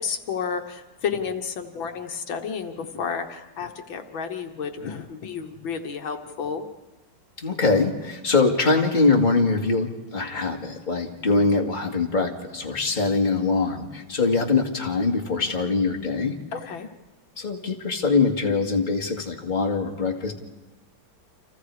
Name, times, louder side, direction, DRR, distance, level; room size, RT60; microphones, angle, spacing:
voice 1, 0.0-6.6 11.3-11.5 16.5-16.9, left 6 dB, 75° left, 6 dB, 2.0 m, -31 dB
voice 2, 7.4-16.4 17.4-20.3, left 3 dB, 25° left, 1 dB, 2.3 m, -23 dB
29.5 x 28.0 x 4.9 m, 1.2 s
omnidirectional pair, 2.2 m